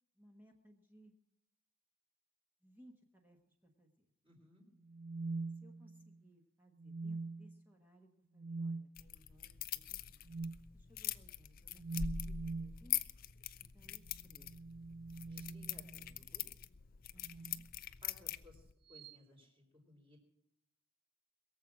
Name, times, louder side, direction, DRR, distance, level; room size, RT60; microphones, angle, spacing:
voice 1, 0.1-1.1 2.6-4.1 5.6-10.4 10.7-13.1 13.7-14.5 17.1-17.7, equal, 10° right, 2 dB, 1.2 m, -64 dB
voice 2, 4.2-4.7 15.2-16.4 18.0-20.2, left 1 dB, 25° right, 2 dB, 3.6 m, -62 dB
sound 1, 4.9-6.2 6.8-7.6 8.4-8.9 10.3-10.6 11.8-12.8 14.3-16.1 17.2-17.7 18.9-19.2, right 3 dB, 45° right, 0.5 m, -43 dB
sound 2, 9.0-18.7, left 10 dB, 40° left, 0.5 m, -43 dB
22.0 x 7.6 x 6.1 m, 0.81 s
head